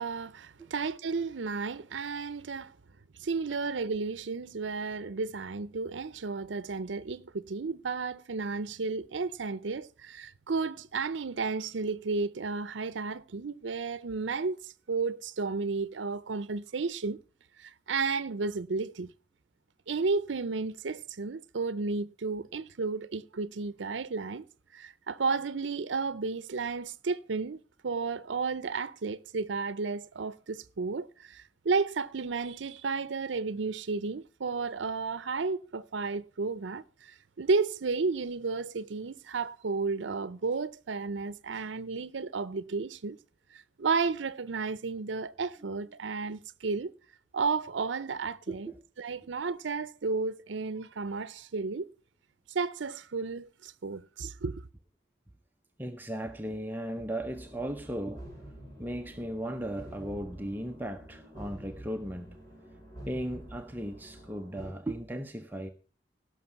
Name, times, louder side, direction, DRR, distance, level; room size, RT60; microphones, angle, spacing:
voice 1, 0.0-2.8 3.2-17.2 17.6-19.1 19.9-24.4 24.7-43.2 43.5-46.9 47.3-48.7 49.0-51.9 52.5-54.6, right 4 dB, 85° right, 0.6 m, -33 dB
voice 2, 48.5-48.8 55.8-58.3 58.8-62.4 63.1-65.7, right 1 dB, 10° right, 0.6 m, -36 dB
sound 1, 57.2-64.7, right 1 dB, 20° left, 4.4 m, -48 dB
17.0 x 6.4 x 5.7 m
head